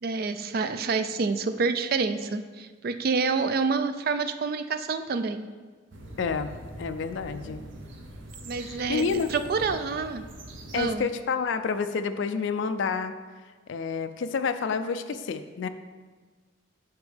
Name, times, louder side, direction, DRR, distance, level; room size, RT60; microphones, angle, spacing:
voice 1, 0.0-5.5 8.5-10.2 10.7-11.1, right 4 dB, 45° right, 10 dB, 0.3 m, -28 dB
sound 1, 5.9-11.0, right 1 dB, 65° right, 0.8 m, -43 dB
voice 2, 6.2-7.6 8.9-9.3 10.7-13.1 13.7-15.7, left 5 dB, 60° left, 9 dB, 0.3 m, -29 dB
8.1 x 5.2 x 3.4 m, 1.4 s
head